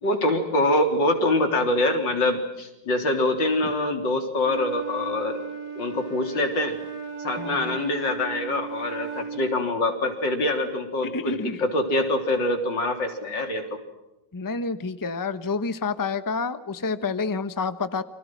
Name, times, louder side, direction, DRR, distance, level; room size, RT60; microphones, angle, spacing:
voice 1, 0.0-5.4 5.8-6.8 7.2-13.8, left 1 dB, 85° left, 5 dB, 4.3 m, -25 dB
Wind instrument woodwind instrument, 4.4-9.6, right 6 dB, 60° right, 3.4 m, -36 dB
voice 2, 7.4-7.8 11.0-11.6 14.3-18.0, left 4 dB, 15° left, 12 dB, 0.9 m, -29 dB
30.0 x 25.5 x 6.1 m, 0.95 s
omnidirectional pair, 1.9 m